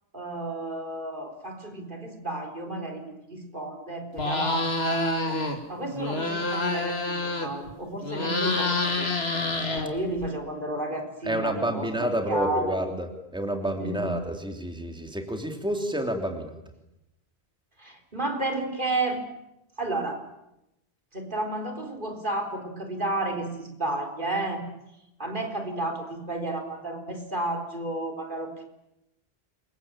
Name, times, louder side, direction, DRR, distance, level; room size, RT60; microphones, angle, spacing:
voice 1, 0.1-5.4 5.7-9.1 9.7-12.8 13.7-14.1 17.8-19.2 19.8-20.2 21.1-24.7 25.2-28.6, right 2 dB, 50° right, 3 dB, 4.1 m, -32 dB
sound 1, 4.1-5.6 5.9-7.7 8.0-10.3, left 2 dB, 75° left, 3.0 m, -27 dB
voice 2, 11.2-13.1 13.3-16.5, right 1 dB, 5° right, 4 dB, 3.0 m, -29 dB
28.0 x 23.0 x 8.9 m, 0.88 s
omnidirectional pair, 1.1 m